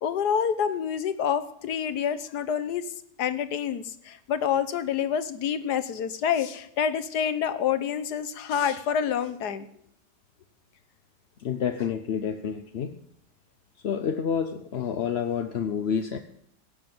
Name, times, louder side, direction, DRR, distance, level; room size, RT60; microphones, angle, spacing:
voice 1, 0.0-2.9 3.2-9.7, left 8 dB, 75° left, 12 dB, 1.5 m, -27 dB
voice 2, 11.4-13.0 13.8-16.2, left 7 dB, 50° left, 7 dB, 0.8 m, -29 dB
17.0 x 6.9 x 9.4 m, 0.71 s
omnidirectional pair, 1.8 m